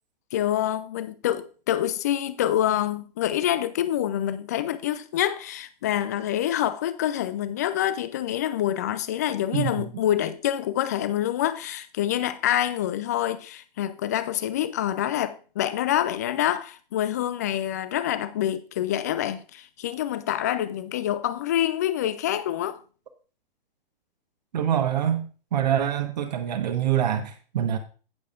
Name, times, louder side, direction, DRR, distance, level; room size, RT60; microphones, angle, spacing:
voice 1, 0.3-22.8, left 11 dB, 20° left, 0.3 m, -26 dB
voice 2, 9.5-9.8 24.5-25.2 25.5-27.8, right 10 dB, 45° right, 1.2 m, -25 dB
17.0 x 6.6 x 2.4 m
figure-of-eight pair, 120°, 29 cm